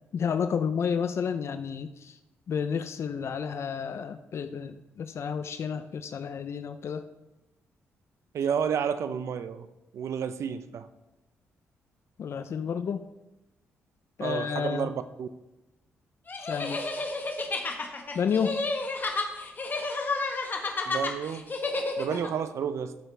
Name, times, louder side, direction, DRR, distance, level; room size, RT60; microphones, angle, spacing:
voice 1, 0.1-2.2 2.5-7.0 12.2-13.0 14.2-14.9 16.5-16.8 18.1-18.6, left 6 dB, 60° left, 10 dB, 0.6 m, -30 dB
voice 2, 8.3-9.7 9.9-10.9 14.2-15.3 20.9-21.5 22.0-22.9, right 7 dB, 70° right, 12 dB, 0.7 m, -30 dB
sound 1, 16.3-22.3, left 3 dB, 40° left, 1.5 m, -31 dB
13.0 x 7.6 x 3.4 m, 0.97 s
cardioid pair, 70°, 5 cm